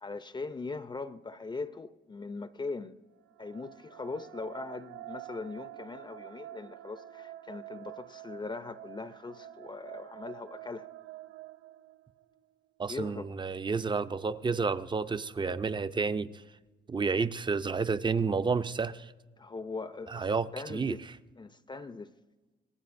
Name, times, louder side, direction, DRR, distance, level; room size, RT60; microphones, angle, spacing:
voice 1, 0.0-3.0 3.4-10.9 12.9-13.3 19.4-20.3 20.5-21.0 21.4-22.1, left 3 dB, 25° left, 0.5 m, -40 dB
sound 1, 3.2-12.4, right 14 dB, 85° right, 0.5 m, -48 dB
voice 2, 12.8-16.4 16.9-19.1 20.1-21.0, right 4 dB, 25° right, 0.5 m, -30 dB
25.0 x 19.0 x 2.6 m
cardioid pair, 90°, 20 cm